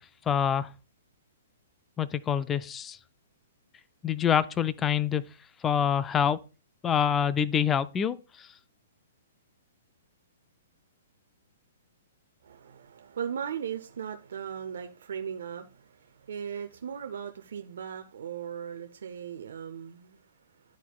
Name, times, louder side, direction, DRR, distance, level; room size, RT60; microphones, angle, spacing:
voice 1, 0.3-0.7 2.0-3.0 4.0-5.2 5.6-6.4 6.8-8.2, left 8 dB, 15° left, 0.3 m, -26 dB
voice 2, 12.4-20.2, right 8 dB, 75° right, 0.6 m, -38 dB
11.5 x 4.1 x 2.3 m
hypercardioid pair, 140°, 0 cm